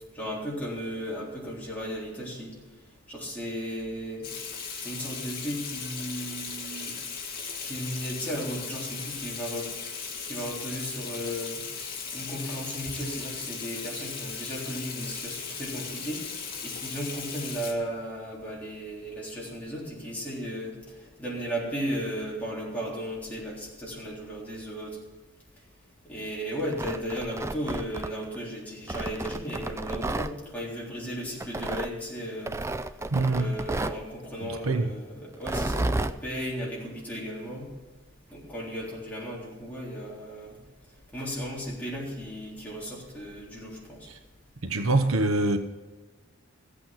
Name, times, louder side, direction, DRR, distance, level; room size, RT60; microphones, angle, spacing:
voice 1, 0.1-2.5 3.1-4.3 4.8-6.9 7.6-9.7 10.2-11.6 12.1-16.2 16.6-25.0 26.0-32.6 33.3-37.7 38.3-40.6 41.1-44.1, equal, 5° left, 3.6 m, -35 dB
Water tap faucet / Sink (filling or washing), 4.2-17.7, left 5 dB, 45° left, 2.2 m, -37 dB
Tearing, 26.6-28.4 28.9-30.3 31.4-31.9 32.5-34.0 35.3-36.2, right 2 dB, 15° right, 0.3 m, -31 dB
voice 2, 33.1-33.5 34.4-34.9 44.6-45.6, right 2 dB, 75° right, 1.0 m, -24 dB
15.0 x 8.5 x 5.8 m
head